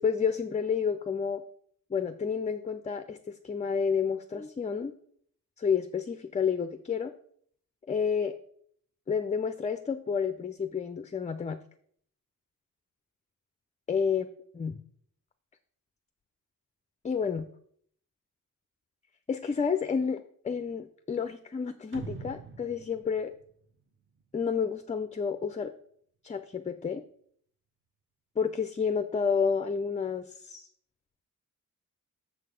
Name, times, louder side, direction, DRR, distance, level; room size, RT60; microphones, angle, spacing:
voice 1, 0.0-1.4 1.9-4.9 5.6-7.1 7.9-8.3 9.1-11.6 13.9-14.3 14.5-14.8 17.0-17.5 19.3-23.3 24.3-25.7 26.2-27.0 28.4-30.7, left 6 dB, 20° left, 10 dB, 0.4 m, -30 dB
sound 1, 21.9-24.4, right 5 dB, 40° right, 0.8 m, -44 dB
6.6 x 6.6 x 5.0 m, 0.62 s
wide cardioid pair, 135°, 32 cm